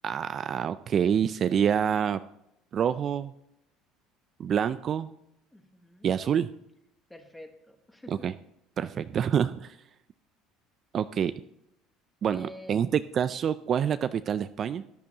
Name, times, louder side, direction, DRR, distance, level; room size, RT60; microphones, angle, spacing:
voice 1, 0.0-2.2 2.7-3.3 4.4-5.1 6.0-6.5 8.1-8.3 8.8-9.8 10.9-11.3 12.2-14.8, right 8 dB, 40° right, 12 dB, 0.3 m, -27 dB
voice 2, 5.5-6.1 7.1-8.3 12.2-12.8, equal, 5° left, 6 dB, 1.3 m, -48 dB
14.0 x 11.0 x 2.9 m, 0.82 s
cardioid pair, 120°, 0 cm